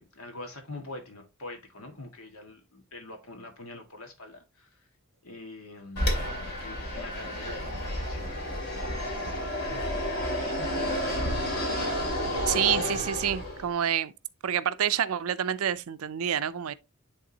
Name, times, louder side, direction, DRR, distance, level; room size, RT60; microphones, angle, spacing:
voice 1, 0.0-4.8 5.2-9.1 9.6-10.9 12.3-12.8, left 2 dB, 80° left, 1.8 m, -45 dB
Fixed-wing aircraft airplane, 6.0-13.7, equal, 50° left, 2.6 m, -30 dB
voice 2, 12.5-14.1 14.4-16.7, right 9 dB, 80° right, 0.5 m, -28 dB
10.0 x 3.6 x 2.8 m
head